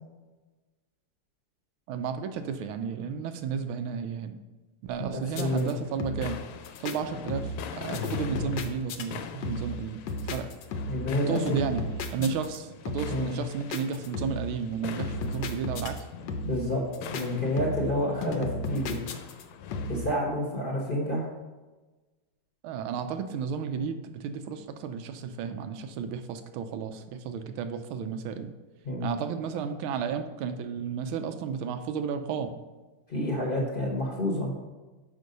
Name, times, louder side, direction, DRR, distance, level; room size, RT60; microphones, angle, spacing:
voice 1, 1.9-4.3 4.8-6.4 6.8-10.0 10.3-10.5 11.3-11.8 12.1-16.0 22.6-28.5 29.0-32.5, right 6 dB, 75° right, 8 dB, 1.4 m, -33 dB
voice 2, 5.0-5.7 10.9-11.4 13.1-13.4 16.4-16.8 17.1-19.0 19.9-21.3 28.8-29.1 33.1-34.5, left 1 dB, 30° left, -2 dB, 1.2 m, -29 dB
sound 1, 5.3-5.7 6.0-6.4 6.6-7.0 7.3-7.7 7.9-9.0 9.4-9.8 10.1-11.1 11.3-12.6 12.8-13.2 13.7-14.5 15.0-16.0 16.3-16.7 16.9-17.2 17.6-18.0 18.2-19.4 19.7-20.1, left 2 dB, 70° left, 1.2 m, -34 dB
sound 2, 5.4-20.2, left 7 dB, 90° left, 1.6 m, -44 dB
6.5 x 5.4 x 5.2 m, 1.2 s
omnidirectional pair, 2.4 m